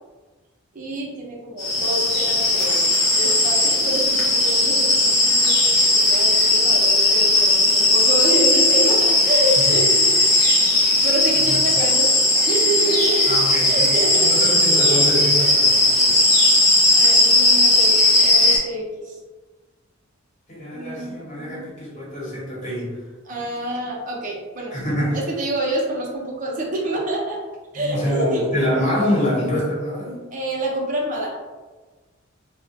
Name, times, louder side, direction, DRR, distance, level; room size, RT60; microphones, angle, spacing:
voice 1, 0.7-2.9 3.1-10.5 10.9-15.0 16.9-18.0 18.2-19.2 20.7-21.7 23.2-24.7 25.1-27.4 27.7-28.5 30.3-31.3, right 1 dB, 40° right, -2 dB, 0.6 m, -27 dB
sound 1, 1.6-18.6, left 2 dB, 85° left, 0.8 m, -17 dB
voice 2, 13.3-16.1 20.5-23.0 24.7-25.2 27.7-30.2, equal, 40° left, -6 dB, 0.9 m, -26 dB
2.3 x 2.1 x 2.7 m, 1.3 s
head